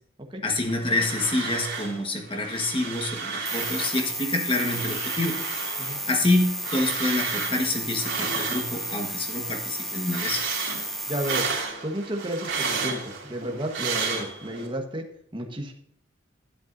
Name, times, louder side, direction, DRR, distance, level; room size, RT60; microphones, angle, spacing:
voice 1, 0.4-5.4 6.1-10.4, left 2 dB, 25° left, 3 dB, 1.3 m, -27 dB
sound 1, 0.6-2.0 2.3-4.1 4.4-9.1 9.5-14.7, right 5 dB, 85° right, 2.7 m, -32 dB
sound 2, 3.4-11.4, equal, ahead, 0.7 m, -33 dB
voice 2, 11.1-11.5 11.8-15.0 15.3-15.7, equal, 25° right, 3 dB, 1.2 m, -32 dB
11.5 x 8.7 x 2.6 m, 0.70 s
head